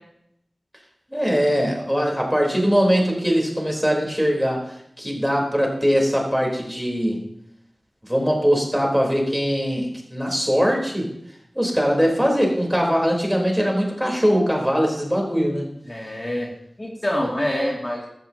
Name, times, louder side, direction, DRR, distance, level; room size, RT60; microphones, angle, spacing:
voice 1, 1.1-7.3 8.1-11.1 11.5-15.7, equal, ahead, 0 dB, 4.0 m, -21 dB
voice 2, 15.9-16.5 16.8-18.1, left 1 dB, 35° left, -3 dB, 2.6 m, -25 dB
15.5 x 14.0 x 3.0 m, 0.75 s
wide cardioid pair, 60°, 0 cm